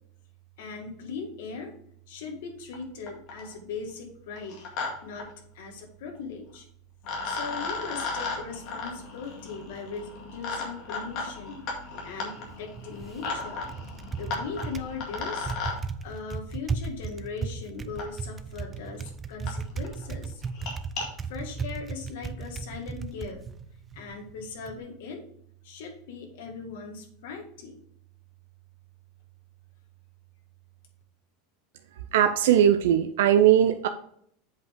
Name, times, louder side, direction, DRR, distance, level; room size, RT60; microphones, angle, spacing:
voice 1, 0.6-1.7 2.1-4.6 5.0-5.3 5.6-6.6 7.2-11.6 12.0-13.7 14.2-15.5 16.0-20.4 21.3-23.4 24.0-25.3 25.6-27.8, left 4 dB, 65° left, 2 dB, 1.9 m, -39 dB
sound 1, 2.7-2.8 3.1-3.5 4.4-4.9 5.2-5.3 6.5-6.6 7.0-15.8 17.1-17.2 18.0-18.1 18.7-18.8 19.1-19.2 19.5-19.6 19.8-20.0 20.5-21.1, left 4 dB, 35° left, 2.0 m, -35 dB
Typing, 12.4-24.8, right 5 dB, 15° right, 0.3 m, -37 dB
voice 2, 32.1-33.9, right 10 dB, 80° right, 7 dB, 0.6 m, -20 dB
7.8 x 5.3 x 3.7 m, 0.67 s
supercardioid pair, 180°, 0 cm